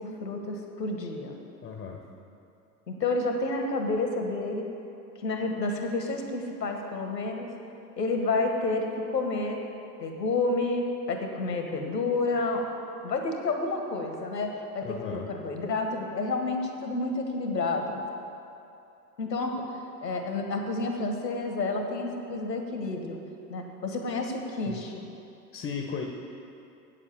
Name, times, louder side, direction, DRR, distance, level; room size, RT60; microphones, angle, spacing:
voice 1, 0.0-1.3 2.9-4.7 5.2-7.5 8.0-9.6 10.0-12.7 13.0-18.0 19.2-19.6 20.0-23.2 23.5-25.1, left 3 dB, 85° left, 4 dB, 1.4 m, -30 dB
voice 2, 1.6-2.0 14.8-15.3 24.7-24.8 25.5-26.1, left 6 dB, 20° left, 3 dB, 0.9 m, -35 dB
8.6 x 7.4 x 7.2 m, 2.7 s
figure-of-eight pair, 90°, 49 cm